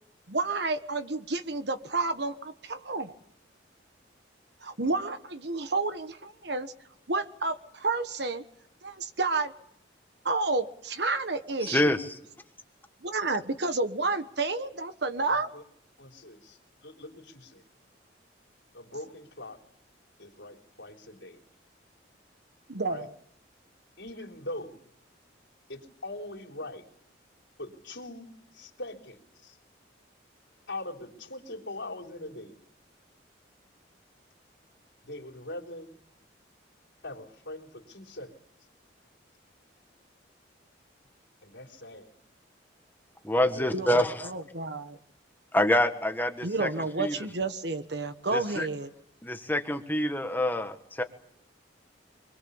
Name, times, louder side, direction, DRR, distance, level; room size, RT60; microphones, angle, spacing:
voice 1, 0.3-3.1 4.6-6.7 7.1-8.4 8.8-9.5 10.2-11.9 13.0-15.5 22.7-23.1 43.7-45.0 46.4-48.9, right 3 dB, 60° right, 10 dB, 1.4 m, -30 dB
voice 2, 11.6-12.2 43.2-44.1 45.5-46.7 47.0-47.3 48.3-48.7 49.2-51.0, left 1 dB, 10° left, 6 dB, 1.6 m, -26 dB
voice 3, 15.3-15.6 16.0-17.6 18.7-19.6 20.2-21.4 22.9-23.1 24.0-24.8 25.7-26.9 27.6-29.6 30.7-32.5 35.0-35.9 37.0-38.3 41.4-42.1 43.4-44.1, left 1 dB, 75° left, -2 dB, 3.8 m, -41 dB
25.0 x 21.5 x 7.1 m, 0.74 s
head